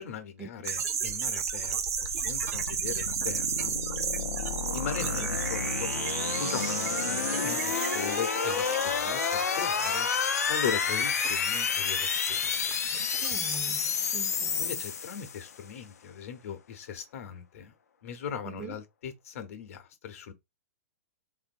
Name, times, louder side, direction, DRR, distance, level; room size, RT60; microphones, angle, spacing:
voice 1, 0.0-3.8 4.7-5.9 6.4-10.1 10.5-12.6 14.6-17.7 18.0-20.3, left 7 dB, 65° left, 0.8 m, -39 dB
sound 1, 0.6-13.6, right 7 dB, 70° right, 0.6 m, -34 dB
sound 2, 1.0-15.6, left 6 dB, 85° left, 0.5 m, -30 dB
voice 2, 13.2-14.8 18.4-18.8, right 6 dB, 20° right, 0.4 m, -44 dB
3.4 x 2.5 x 2.5 m
hypercardioid pair, 120°, 8 cm